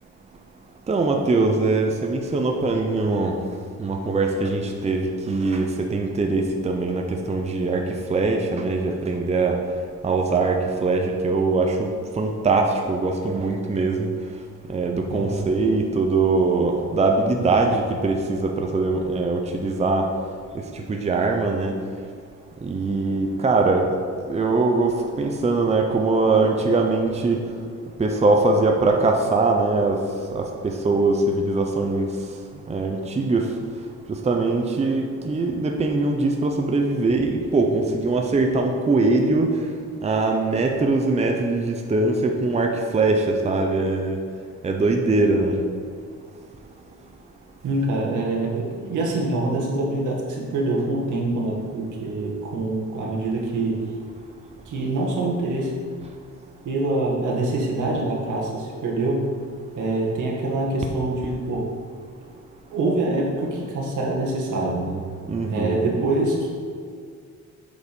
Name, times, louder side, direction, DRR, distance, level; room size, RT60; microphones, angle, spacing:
voice 1, 0.9-3.4 3.8-9.6 10.0-11.9 12.2-14.1 14.7-20.1 20.5-21.7 22.6-23.9 24.3-27.4 28.0-30.0 30.3-32.1 32.7-33.5 34.1-39.6 40.0-44.2 44.6-45.6 65.3-65.8, right 3 dB, 20° right, 2 dB, 0.7 m, -22 dB
voice 2, 15.1-15.5 17.4-17.6 47.6-53.9 54.7-55.8 56.6-59.3 59.8-61.7 62.7-65.1 65.5-66.5, right 2 dB, 80° right, -3 dB, 1.9 m, -25 dB
7.9 x 5.1 x 5.3 m, 2.2 s
cardioid pair, 125°, 30 cm